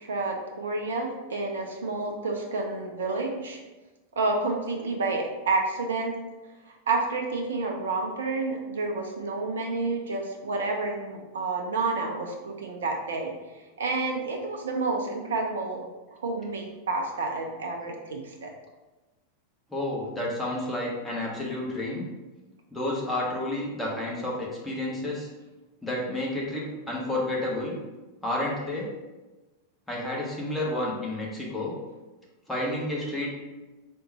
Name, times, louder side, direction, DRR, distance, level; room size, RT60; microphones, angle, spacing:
voice 1, 0.0-3.6 4.1-6.1 6.9-13.3 13.8-18.5, right 3 dB, 65° right, 1 dB, 0.4 m, -29 dB
voice 2, 19.7-22.1 22.7-25.3 25.8-27.8 28.2-28.9 29.9-31.7 32.5-33.4, left 1 dB, 5° left, -5 dB, 1.0 m, -30 dB
3.7 x 2.1 x 4.0 m, 1.2 s
figure-of-eight pair, 90°, 0 cm